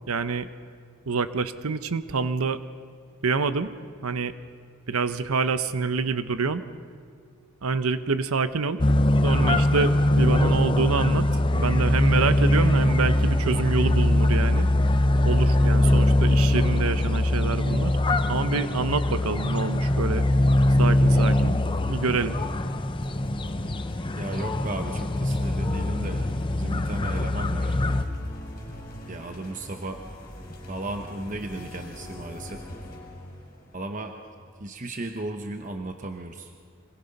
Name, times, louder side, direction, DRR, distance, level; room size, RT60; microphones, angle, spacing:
voice 1, 0.1-0.5 1.1-2.6 3.2-3.7 4.0-4.3 4.9-6.6 7.6-8.8 9.2-14.7 15.2-18.0 18.3-20.2 20.8-21.6 21.9-22.3, right 4 dB, 85° right, 12 dB, 0.8 m, -26 dB
sound 1, 8.8-28.0, left 1 dB, 20° left, 0.6 m, -22 dB
sound 2, 19.2-34.6, left 1 dB, 40° left, 5.2 m, -41 dB
voice 2, 24.2-27.8 29.1-30.0 30.7-32.6 33.7-34.2 34.6-36.5, right 2 dB, 35° right, 5 dB, 0.9 m, -35 dB
25.0 x 22.5 x 5.4 m, 2.1 s
head